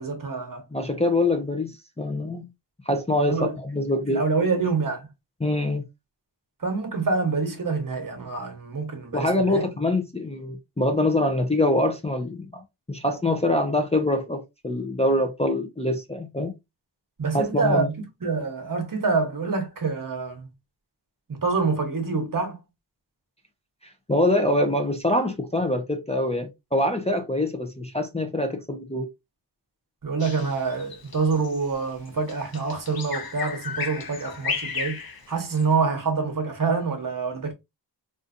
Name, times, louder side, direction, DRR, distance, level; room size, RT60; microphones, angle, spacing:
voice 1, 0.0-0.6 3.3-3.6 4.1-5.1 6.6-9.6 17.2-20.5 21.3-22.6 30.0-35.0 35.3-37.5, right 4 dB, 45° right, 1.0 m, -26 dB
voice 2, 0.7-2.5 2.9-4.2 5.4-5.9 9.1-12.6 12.9-16.5 17.3-17.9 24.1-29.1, left 1 dB, 15° left, 0.5 m, -24 dB
Bird vocalization bird call bird song, 30.2-35.7, left 5 dB, 55° left, 0.7 m, -34 dB
3.8 x 2.5 x 2.5 m
wide cardioid pair, 80°, 44 cm